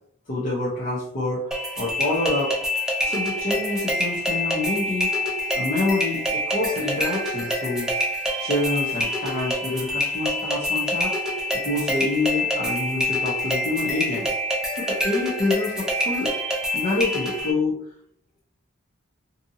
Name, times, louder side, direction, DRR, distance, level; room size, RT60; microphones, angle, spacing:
voice 1, 0.3-1.5 1.8-2.6 3.0-5.1 5.5-7.9 8.4-11.1 11.6-14.3 14.7-16.3 16.7-17.8, left 2 dB, 40° left, -6 dB, 0.7 m, -27 dB
sound 1, 1.5-17.5, left 1 dB, 5° right, 0.4 m, -26 dB
2.7 x 2.5 x 2.6 m, 0.64 s
head